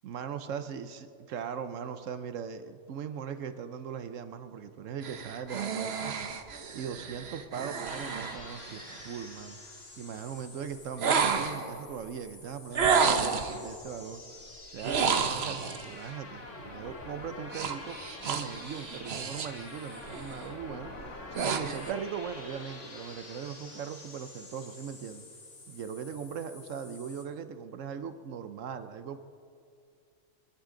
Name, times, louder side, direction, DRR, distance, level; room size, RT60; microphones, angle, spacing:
voice 1, 0.0-6.3 6.7-9.6 10.0-14.2 14.7-18.0 18.2-25.2 25.7-29.2, right 7 dB, 85° right, 10 dB, 1.1 m, -39 dB
Female Zombie, 5.0-9.2 11.0-11.8 12.7-13.6 14.8-15.9 17.5-19.6 20.0-20.3 20.9-22.0, right 5 dB, 55° right, 1.1 m, -30 dB
sound 1, 7.8-27.2, left 2 dB, 75° left, 2.1 m, -47 dB
29.5 x 11.5 x 3.8 m, 2.4 s
omnidirectional pair, 1.3 m